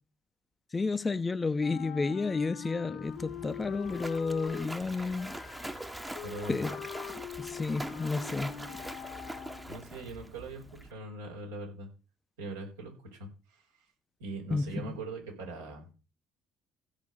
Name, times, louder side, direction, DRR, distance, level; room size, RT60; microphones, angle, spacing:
voice 1, 0.7-5.4 6.5-6.8 7.4-8.8 14.5-15.0, left 3 dB, 25° left, 0.9 m, -31 dB
Wind instrument woodwind instrument, 1.6-9.9, left 10 dB, 65° left, 1.5 m, -43 dB
Splash splatter, 3.0-10.9, right 1 dB, 10° right, 1.2 m, -43 dB
voice 2, 6.2-6.6 9.7-10.6 10.9-11.9 12.4-13.6 14.2-15.9, right 2 dB, 80° right, 4.7 m, -41 dB
15.5 x 5.2 x 6.5 m
hypercardioid pair, 55°, 0 cm